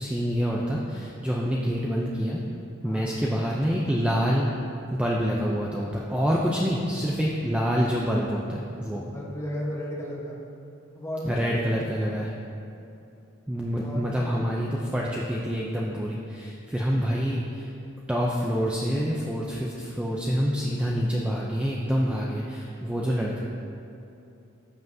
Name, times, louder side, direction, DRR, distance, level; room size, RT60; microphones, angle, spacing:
voice 1, 0.0-2.4 2.8-4.5 4.9-9.0 11.2-12.3 13.5-17.7 18.1-23.4, equal, 5° right, -4 dB, 0.4 m, -27 dB
voice 2, 8.9-10.4 10.9-12.2 13.8-14.7, left 1 dB, 15° left, -3 dB, 1.1 m, -35 dB
14.5 x 5.7 x 2.7 m, 2.8 s
head